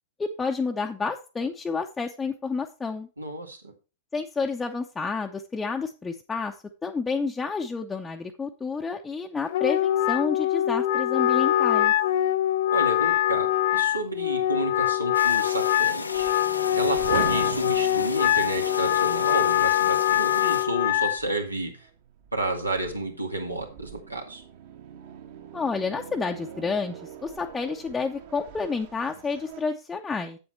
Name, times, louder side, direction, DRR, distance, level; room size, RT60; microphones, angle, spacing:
voice 1, 0.2-3.1 4.1-6.5 6.8-11.9 25.5-30.4, left 4 dB, 10° left, 2 dB, 0.7 m, -30 dB
voice 2, 3.2-3.7 12.7-16.4 16.8-21.9 22.3-24.4, right 2 dB, 85° right, 3 dB, 2.0 m, -31 dB
Wind instrument woodwind instrument, 9.5-21.2, left 12 dB, 55° left, 0.5 m, -23 dB
sound 1, 12.6-29.6, right 8 dB, 55° right, 1.7 m, -43 dB
sound 2, 15.1-20.7, left 3 dB, 80° left, 0.8 m, -36 dB
7.9 x 7.9 x 4.3 m, 0.32 s
figure-of-eight pair, 100°, 0 cm